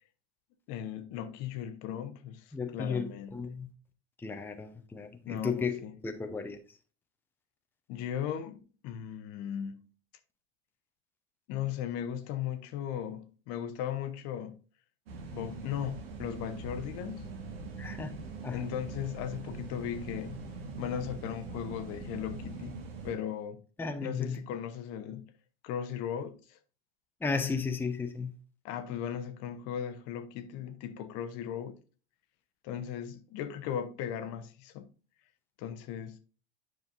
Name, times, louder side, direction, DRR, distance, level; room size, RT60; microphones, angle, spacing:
voice 1, 0.7-3.4 5.2-5.9 7.9-9.9 11.5-14.6 15.3-17.3 18.5-20.4 20.8-22.8 23.0-23.6 24.0-25.3 25.6-26.6 28.6-31.7 32.6-34.9 35.6-36.2, left 9 dB, 50° left, 0.9 m, -37 dB
voice 2, 2.5-3.7 4.2-6.6 17.8-18.7 23.8-24.4 27.2-28.3, left 5 dB, 5° left, 0.7 m, -34 dB
sound 1, 15.1-23.1, right 4 dB, 70° right, 1.5 m, -42 dB
9.3 x 5.2 x 2.6 m
hypercardioid pair, 80°, 31 cm